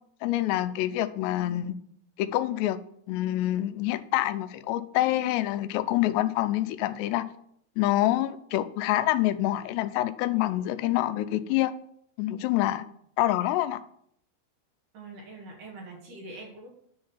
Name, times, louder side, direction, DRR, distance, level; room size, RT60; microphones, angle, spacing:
voice 1, 0.2-1.7 2.2-2.8 3.1-7.3 7.8-11.7 12.2-12.8 13.2-13.8, left 14 dB, 85° left, 12 dB, 2.7 m, -26 dB
voice 2, 14.9-16.7, right 2 dB, 60° right, -1 dB, 3.1 m, -43 dB
10.5 x 3.8 x 7.0 m, 0.69 s
omnidirectional pair, 4.8 m